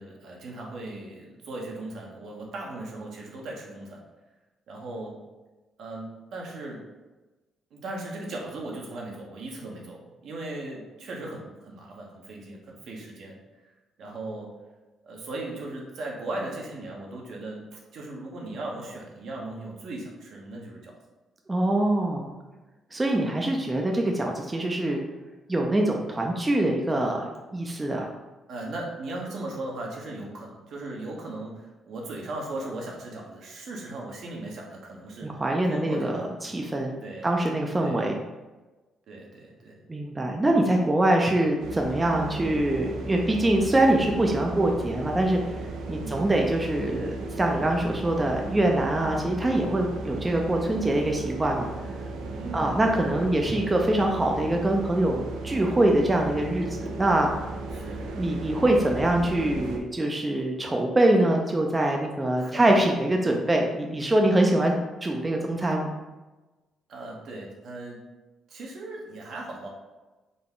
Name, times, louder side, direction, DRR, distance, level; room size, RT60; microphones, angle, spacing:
voice 1, 0.0-4.0 4.7-5.2 5.8-6.8 7.7-13.4 14.0-14.5 15.0-20.9 28.5-35.4 35.7-36.3 37.0-37.3 37.8-38.0 39.1-39.8 46.0-46.2 52.4-52.8 57.7-58.1 62.4-62.6 66.9-68.0 68.5-69.7, right 2 dB, 70° right, -1 dB, 0.8 m, -37 dB
voice 2, 21.5-22.3 22.9-25.0 25.5-27.3 27.5-28.1 35.2-38.2 39.9-51.7 52.5-57.3 58.2-65.9, right 1 dB, 20° right, 1 dB, 0.4 m, -24 dB
sound 1, 41.6-59.8, right 2 dB, 85° right, 0.4 m, -36 dB
3.8 x 2.2 x 3.7 m, 1.2 s
cardioid pair, 90°, 0 cm